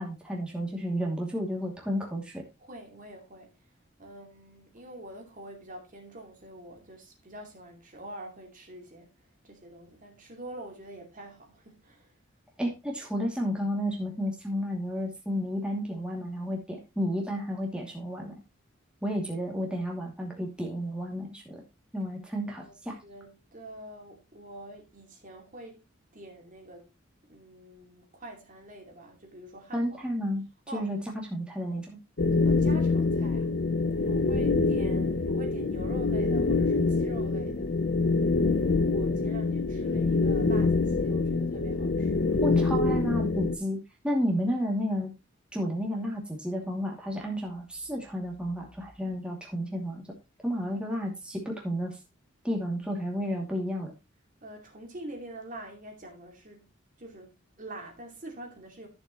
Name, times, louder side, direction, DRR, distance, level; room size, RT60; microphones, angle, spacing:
voice 1, 0.0-2.4 12.6-18.3 19.0-21.6 21.9-23.0 29.7-30.4 30.7-32.0 42.4-43.8 44.0-45.1 45.5-50.0 50.4-52.0 52.4-53.9, equal, 5° right, 2.5 m, -32 dB
voice 2, 2.6-3.5 4.0-12.1 22.4-22.8 23.0-25.8 26.1-26.9 27.2-30.0 30.7-30.9 32.4-33.5 34.0-37.8 38.9-42.3 54.4-56.7 57.0-58.9, right 1 dB, 40° right, 2.6 m, -45 dB
sound 1, 32.2-43.6, left 3 dB, 55° left, 0.7 m, -25 dB
13.0 x 7.0 x 3.0 m
head